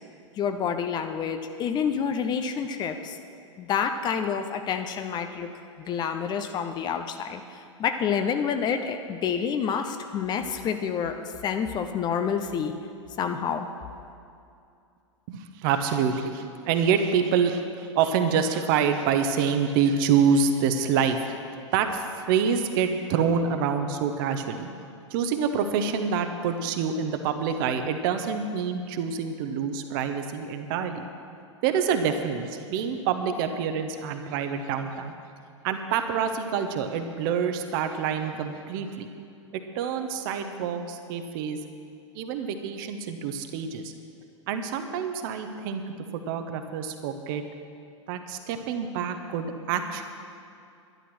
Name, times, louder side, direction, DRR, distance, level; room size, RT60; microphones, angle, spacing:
voice 1, 0.3-3.2 3.6-5.5 5.8-11.2 11.4-12.7 13.2-13.7, left 7 dB, 25° left, 7 dB, 0.8 m, -28 dB
voice 2, 15.3-21.4 21.7-24.7 25.1-31.1 31.6-35.1 35.6-39.1 39.5-41.6 42.1-43.9 44.5-47.4 48.1-50.0, right 6 dB, 45° right, 7 dB, 1.1 m, -27 dB
12.0 x 11.0 x 6.2 m, 2.5 s
figure-of-eight pair, 95°, 16 cm